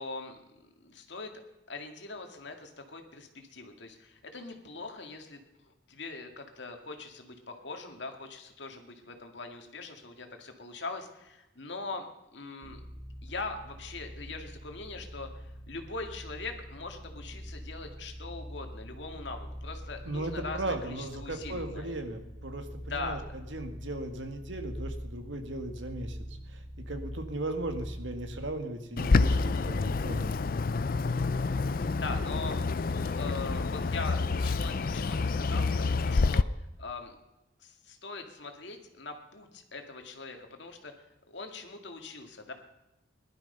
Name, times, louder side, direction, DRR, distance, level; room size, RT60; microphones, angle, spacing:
voice 1, 0.0-1.3 1.7-12.1 12.3-12.8 13.2-22.0 22.9-23.2 31.9-32.6 32.9-37.1 37.6-40.9 41.3-42.5, left 3 dB, 65° left, 5 dB, 2.1 m, -41 dB
sound 1, 12.6-28.8, equal, 50° right, 1.8 m, -44 dB
voice 2, 20.1-23.2 23.5-26.2 26.5-30.4, right 2 dB, 75° right, 6 dB, 1.9 m, -37 dB
Bird, 29.0-36.4, left 3 dB, 50° left, 0.5 m, -28 dB
19.0 x 12.0 x 5.6 m, 0.95 s
head